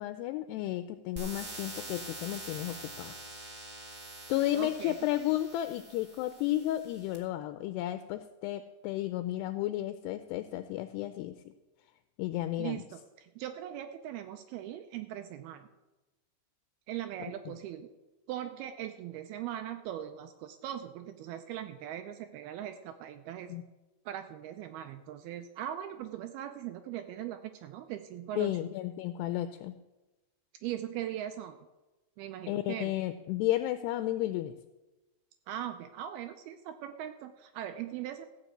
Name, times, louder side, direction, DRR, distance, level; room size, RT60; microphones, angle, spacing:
voice 1, 0.0-3.2 4.3-11.4 12.2-12.8 23.5-23.6 28.4-29.8 32.5-34.5, left 14 dB, 85° left, 10 dB, 2.5 m, -33 dB
sound 1, 1.2-7.2, right 1 dB, 30° right, 1.4 m, -45 dB
voice 2, 4.6-5.0 12.6-12.8 13.2-15.7 16.9-17.9 18.3-23.5 24.1-28.6 30.6-31.6 32.2-32.9 35.5-38.2, right 11 dB, 85° right, 7 dB, 2.3 m, -40 dB
16.0 x 6.0 x 7.8 m, 1.1 s
omnidirectional pair, 5.1 m